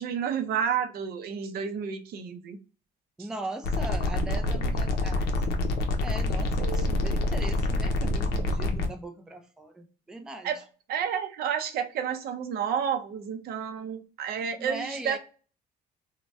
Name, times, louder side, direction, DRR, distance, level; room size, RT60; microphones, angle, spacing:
voice 1, 0.0-2.6 6.6-6.9 10.4-10.6 10.9-15.2, right 8 dB, 65° right, 0.5 m, -30 dB
voice 2, 3.2-5.4 6.0-10.6 14.6-15.2, right 2 dB, 5° right, 0.4 m, -39 dB
sound 1, 3.6-8.9, left 2 dB, 70° left, 0.6 m, -26 dB
2.6 x 2.1 x 3.1 m
cardioid pair, 110°, 17 cm